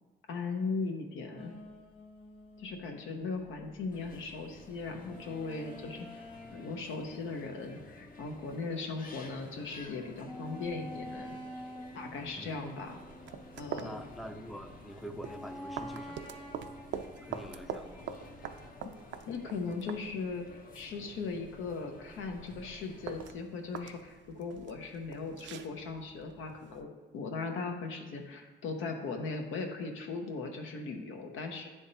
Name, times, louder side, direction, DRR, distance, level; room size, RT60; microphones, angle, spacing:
voice 1, 0.3-1.5 2.6-6.2 6.5-11.4 11.9-13.0 13.6-14.0 19.3-31.7, left 4 dB, 80° left, 3 dB, 1.0 m, -38 dB
sound 1, 1.4-9.1 9.5-9.6 10.2-14.6 15.2-18.7, equal, 25° left, 1.3 m, -49 dB
sound 2, 3.9-23.3, left 3 dB, 45° left, 0.9 m, -53 dB
sound 3, 13.0-26.8, right 7 dB, 65° right, 0.5 m, -46 dB
voice 2, 13.8-16.3 17.2-18.1, equal, ahead, 7 dB, 0.4 m, -45 dB
9.5 x 3.6 x 4.1 m, 1.3 s
cardioid pair, 90°, 20 cm